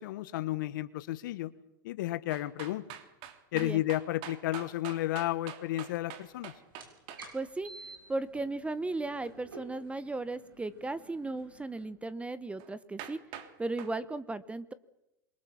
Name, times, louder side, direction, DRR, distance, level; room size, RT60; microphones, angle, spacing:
voice 1, 0.0-1.5 1.8-2.8 3.5-6.5, left 15 dB, 70° left, 15 dB, 1.2 m, -32 dB
sound 1, 2.3-7.2 12.6-12.7 13.0-13.5 13.8-13.9, right 10 dB, 55° right, 3.2 m, -44 dB
sound 2, 6.7-11.9, right 3 dB, 90° right, 7.1 m, -51 dB
voice 2, 7.3-7.7 8.1-13.2 13.6-14.7, right 2 dB, 10° right, 15 dB, 1.2 m, -36 dB
27.0 x 23.5 x 7.3 m, 0.92 s
hypercardioid pair, 95°, 11 cm